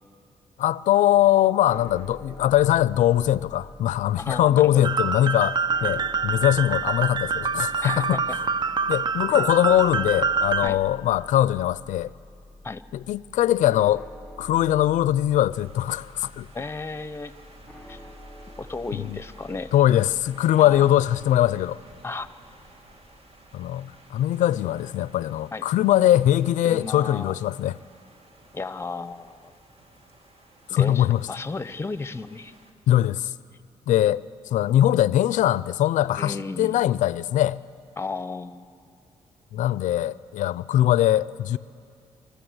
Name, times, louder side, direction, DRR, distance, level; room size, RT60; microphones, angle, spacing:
voice 1, 0.6-8.2 8.9-12.1 12.9-14.0 14.4-16.5 18.9-19.2 19.7-21.8 23.5-27.7 30.7-31.2 32.9-33.3 33.9-34.2 34.5-37.6 39.5-41.6, left 12 dB, 85° left, 0.4 m, -21 dB
sound 1, 1.6-20.4, left 1 dB, 5° left, 1.5 m, -47 dB
voice 2, 4.2-4.9 7.8-8.2 10.6-10.8 12.6-12.8 16.5-17.4 17.9-18.0 18.6-19.7 20.6-20.9 22.0-22.3 25.5-25.6 26.6-27.4 28.5-29.5 30.7-32.5 36.2-36.8 38.0-38.9, left 3 dB, 20° left, 0.7 m, -34 dB
sound 2, 4.8-10.7, right 5 dB, 35° right, 0.5 m, -26 dB
sound 3, 15.5-32.7, right 1 dB, 50° right, 2.3 m, -53 dB
25.0 x 14.0 x 8.0 m
cardioid pair, 85°, 13 cm